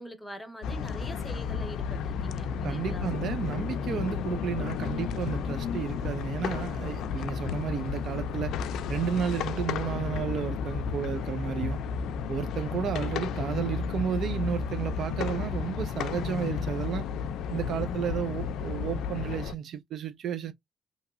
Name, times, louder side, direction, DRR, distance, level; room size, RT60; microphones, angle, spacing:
voice 1, 0.0-3.1, equal, 10° left, 0.7 m, -44 dB
sound 1, 0.6-19.6, left 6 dB, 80° left, 0.3 m, -32 dB
voice 2, 2.6-8.5 8.9-11.8 12.3-17.1 17.5-20.5, right 8 dB, 65° right, 0.4 m, -32 dB
2.8 x 2.8 x 2.3 m
cardioid pair, 90°, 0 cm